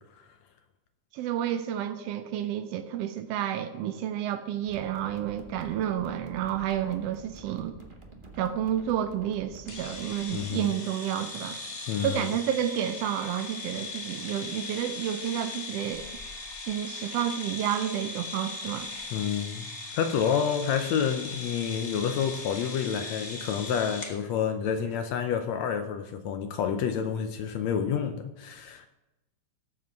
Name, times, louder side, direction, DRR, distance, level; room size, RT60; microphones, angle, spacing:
voice 1, 1.1-7.8 8.4-11.6 12.0-16.1 16.6-18.9, right 10 dB, 80° right, 8 dB, 1.4 m, -30 dB
sound 1, 4.6-10.5, right 3 dB, 60° right, 0.5 m, -48 dB
sound 2, 9.7-24.2, left 3 dB, 50° left, 0.8 m, -39 dB
voice 2, 10.3-10.7 11.9-12.3 19.1-28.9, left 7 dB, 75° left, 7 dB, 1.8 m, -29 dB
18.5 x 7.5 x 4.6 m, 1.0 s
omnidirectional pair, 3.6 m